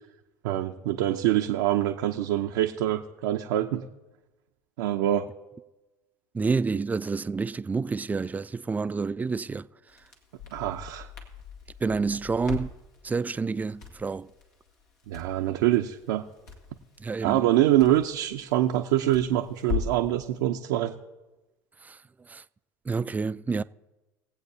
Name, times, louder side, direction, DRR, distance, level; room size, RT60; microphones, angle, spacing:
voice 1, 0.4-3.8 4.8-5.3 10.5-11.1 15.1-16.2 17.2-20.9, right 13 dB, 75° right, 0.6 m, -25 dB
voice 2, 6.3-9.7 11.8-12.7 13.0-14.3 17.0-17.4 21.8-22.0 22.3-22.4 22.9-23.6, right 4 dB, 15° right, 0.3 m, -28 dB
Crackle, 9.9-20.1, left 6 dB, 85° left, 1.7 m, -40 dB
21.0 x 8.0 x 2.8 m
hypercardioid pair, 70°, 9 cm